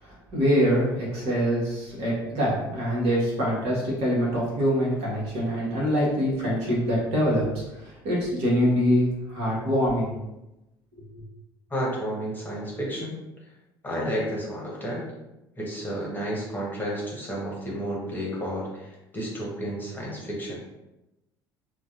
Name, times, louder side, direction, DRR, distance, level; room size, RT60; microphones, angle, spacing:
voice 1, 0.0-7.4 7.7-10.2, equal, 55° right, -5 dB, 1.4 m, -24 dB
voice 2, 11.7-13.1 13.8-15.0 15.6-20.6, equal, 15° left, -4 dB, 1.2 m, -31 dB
4.0 x 2.4 x 2.5 m, 0.95 s
figure-of-eight pair, 60°, 13 cm